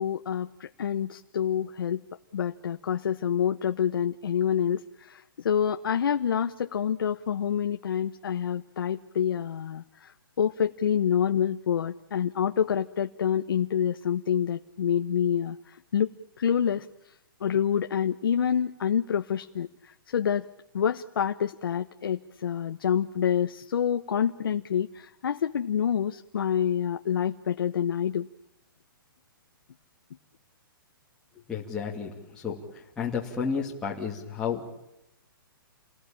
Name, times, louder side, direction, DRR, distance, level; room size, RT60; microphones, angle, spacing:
voice 1, 0.0-2.0 2.3-10.1 10.4-15.6 15.9-16.1 16.4-16.8 17.4-19.7 20.1-20.5 20.7-28.3, left 8 dB, 70° left, 7 dB, 1.1 m, -27 dB
voice 2, 31.5-34.6, left 6 dB, 5° left, -6 dB, 2.6 m, -32 dB
28.5 x 20.0 x 8.8 m, 0.87 s
hypercardioid pair, 160°, 12 cm